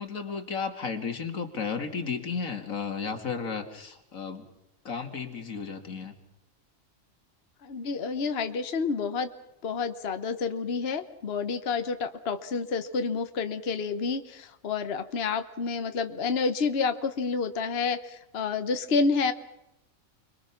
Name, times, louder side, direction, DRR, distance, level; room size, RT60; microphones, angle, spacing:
voice 1, 0.0-4.5 4.8-6.1, left 5 dB, 85° left, 5 dB, 2.5 m, -33 dB
voice 2, 7.6-9.3 9.6-19.3, left 5 dB, 50° left, 9 dB, 1.2 m, -29 dB
30.0 x 22.0 x 5.9 m, 0.88 s
omnidirectional pair, 1.4 m